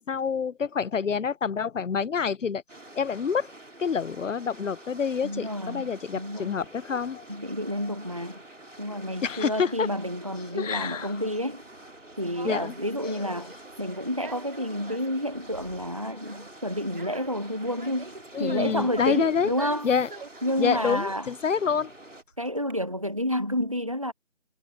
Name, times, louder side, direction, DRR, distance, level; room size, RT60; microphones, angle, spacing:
voice 1, 0.0-2.6 3.0-3.5 3.8-7.3 9.2-9.9 10.5-11.1 12.4-12.7 13.0-13.3 18.3-19.5 19.8-20.1 20.6-21.9, left 6 dB, 85° left, 0.6 m, -27 dB
sound 1, 2.7-22.2, right 1 dB, 85° right, 3.4 m, -47 dB
voice 2, 5.2-6.6 7.3-8.4 8.8-11.6 12.2-19.9 20.4-21.3 22.4-24.1, equal, 30° right, 0.6 m, -30 dB
Conversation, 10.8-22.7, right 3 dB, 45° right, 3.0 m, -46 dB
figure-of-eight pair, 160°, 37 cm